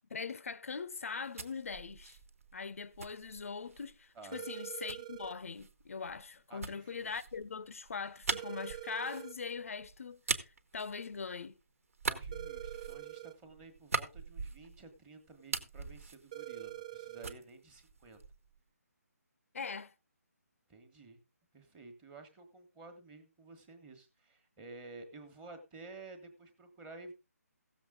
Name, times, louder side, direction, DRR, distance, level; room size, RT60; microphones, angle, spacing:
voice 1, 0.1-2.2 2.5-11.6 19.5-19.9, left 5 dB, 55° left, 0.7 m, -41 dB
sound 1, 1.0-4.0 4.9-11.5 11.9-15.0 15.3-17.0 17.2-18.5, right 4 dB, 55° right, 1.4 m, -41 dB
voice 2, 4.1-4.4 6.5-7.2 12.1-18.2 20.7-21.2 21.5-27.1, right 3 dB, 10° right, 1.3 m, -52 dB
sound 2, 4.3-5.4 8.3-9.4 12.3-13.4 16.3-17.4, right 15 dB, 25° right, 0.5 m, -45 dB
16.0 x 7.2 x 3.7 m
hypercardioid pair, 165°, 9 cm